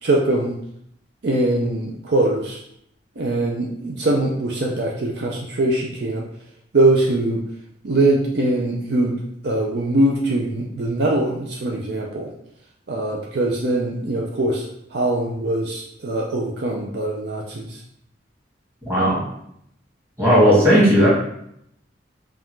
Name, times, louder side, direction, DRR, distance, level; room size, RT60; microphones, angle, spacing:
voice 1, 0.0-0.5 1.2-2.6 3.2-6.2 6.7-7.4 7.8-9.1 9.4-12.3 12.9-14.7 14.9-17.8 20.7-20.8, right 2 dB, 60° right, -1 dB, 0.5 m, -22 dB
voice 2, 18.8-19.2 20.2-21.1, equal, 15° right, -8 dB, 1.6 m, -15 dB
5.3 x 2.4 x 3.1 m, 0.73 s
head